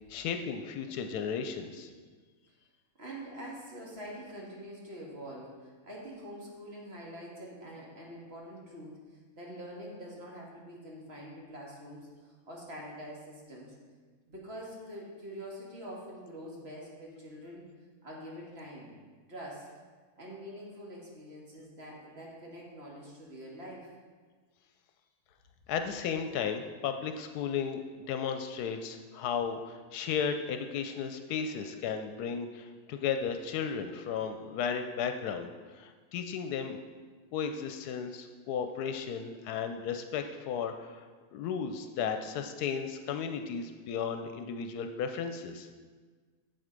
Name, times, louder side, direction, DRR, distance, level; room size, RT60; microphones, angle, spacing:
voice 1, 0.1-1.9 25.7-36.8 37.3-41.0 41.3-45.7, left 6 dB, 85° left, 7 dB, 1.1 m, -34 dB
voice 2, 3.0-9.0 9.4-13.7 14.3-17.6 18.0-18.9 19.3-19.7 20.2-23.9, equal, 40° right, -3 dB, 2.0 m, -45 dB
7.8 x 7.5 x 5.1 m, 1.5 s
omnidirectional pair, 1.6 m